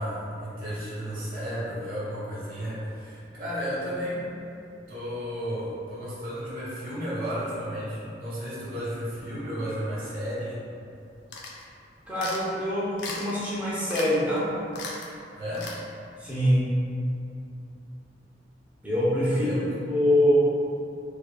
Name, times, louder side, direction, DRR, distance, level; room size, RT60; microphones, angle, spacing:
voice 1, 0.0-4.2 4.9-10.6 15.4-15.7 19.3-19.6, equal, 50° right, -9 dB, 1.0 m, -33 dB
sound 1, 11.3-11.6 12.2-12.4 13.0-13.4 13.9-14.1 14.4-14.5 14.7-15.1 15.5-15.8, left 3 dB, 70° left, 0.5 m, -36 dB
voice 2, 12.1-14.5 16.2-16.6 18.8-19.5 19.8-20.3, left 1 dB, 10° right, -10 dB, 0.6 m, -24 dB
4.4 x 2.6 x 2.2 m, 2.6 s
head